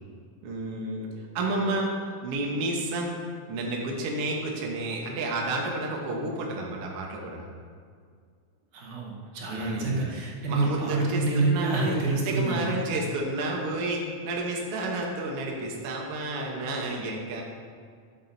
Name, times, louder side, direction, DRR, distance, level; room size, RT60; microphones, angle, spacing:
voice 1, 0.4-1.9 2.2-3.2 3.5-7.5 9.5-10.1 10.5-12.0 12.3-17.4, right 2 dB, 60° right, -1 dB, 1.8 m, -31 dB
voice 2, 8.7-12.8, right 3 dB, 75° right, -3 dB, 2.7 m, -27 dB
12.5 x 7.7 x 2.7 m, 2.1 s
omnidirectional pair, 3.6 m